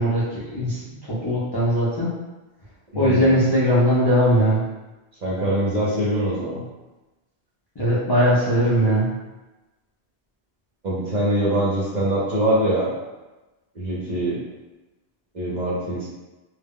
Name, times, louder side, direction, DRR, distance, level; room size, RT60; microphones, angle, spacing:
voice 1, 0.0-2.1 2.9-4.6 7.8-9.1, equal, 35° left, -10 dB, 0.4 m, -20 dB
voice 2, 2.9-3.4 5.2-6.6 10.8-12.9 13.8-14.4 15.3-16.1, right 1 dB, 50° right, -6 dB, 0.7 m, -23 dB
2.1 x 2.0 x 3.6 m, 1.1 s
omnidirectional pair, 1.1 m